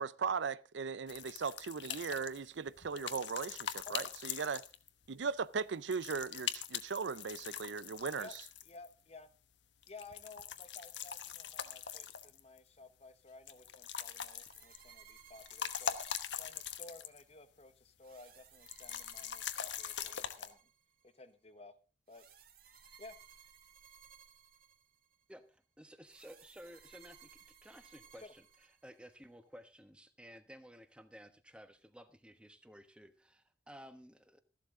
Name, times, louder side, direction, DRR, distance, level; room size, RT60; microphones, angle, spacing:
voice 1, 0.0-4.6 5.1-8.3, right 5 dB, 80° right, 0.6 m, -38 dB
sound 1, 1.1-5.1 5.9-8.9 9.8-12.6 13.5-14.9 15.2-17.3 17.6-17.7 18.7-20.5, left 8 dB, 85° left, 1.1 m, -42 dB
voice 2, 8.6-9.3 9.9-20.6 21.0-21.7 22.1-22.2 23.0-23.2 28.2-28.3, left 3 dB, 35° left, 1.2 m, -55 dB
sound 2, 14.0-17.2 18.0-21.1 22.1-25.2 26.1-29.2, right 7 dB, 55° right, 2.2 m, -60 dB
voice 3, 25.3-28.4 28.8-34.4, equal, 5° right, 1.2 m, -55 dB
14.5 x 12.0 x 3.8 m
head